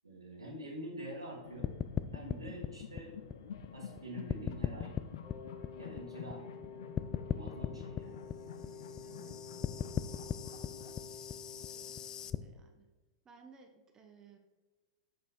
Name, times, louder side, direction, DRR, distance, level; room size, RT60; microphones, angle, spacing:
voice 1, 0.0-1.7 2.1-3.1 3.7-4.9 5.8-6.4 7.3-8.2, right 1 dB, 85° right, -2 dB, 1.5 m, -46 dB
sound 1, 1.4-11.0, left 7 dB, 60° left, 0.7 m, -50 dB
sound 2, 1.6-4.0 4.3-6.7 7.0-12.4, left 9 dB, 25° left, 0.4 m, -38 dB
Wind instrument woodwind instrument, 5.2-12.5, left 5 dB, 45° left, 1.4 m, -50 dB
voice 2, 9.0-9.5 11.6-12.9 13.2-14.4, right 5 dB, 25° right, 3 dB, 0.9 m, -60 dB
7.3 x 5.5 x 4.0 m, 1.3 s
figure-of-eight pair, 100°, 3 cm